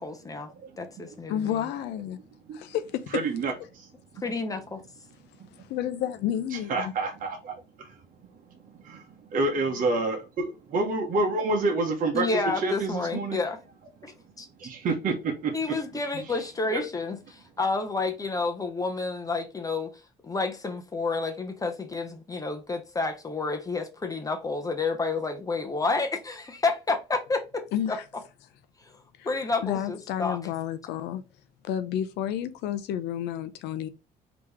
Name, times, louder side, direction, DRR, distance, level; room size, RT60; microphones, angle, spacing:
voice 1, 0.0-0.5 0.8-1.5 4.2-4.8 12.1-13.6 14.0-14.1 14.4-14.5 15.5-19.9 20.2-28.0 29.2-30.4, left 3 dB, 20° left, 0.6 m, -30 dB
voice 2, 1.3-2.2 2.5-3.2 5.6-6.9 27.7-28.0 29.2-31.2 31.6-33.9, left 10 dB, 85° left, 0.5 m, -31 dB
voice 3, 3.1-3.9 4.1-4.2 6.5-7.9 8.8-13.4 14.6-15.8 16.1-16.3 16.7-16.8, right 3 dB, 55° right, 1.0 m, -28 dB
3.6 x 2.9 x 3.4 m
cardioid pair, 110°, 17 cm